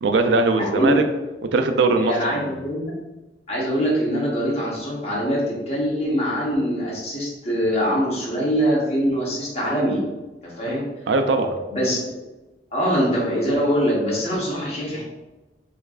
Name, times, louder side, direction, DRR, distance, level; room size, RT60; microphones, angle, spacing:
voice 1, 0.0-1.0 1.5-2.6 11.1-11.6, right 3 dB, 85° right, 7 dB, 0.4 m, -20 dB
voice 2, 0.6-0.9 2.0-2.9 3.5-10.1 10.4-10.9 11.7-12.0 12.7-15.0, equal, 35° left, -5 dB, 1.0 m, -23 dB
4.4 x 2.4 x 2.3 m, 1.1 s
head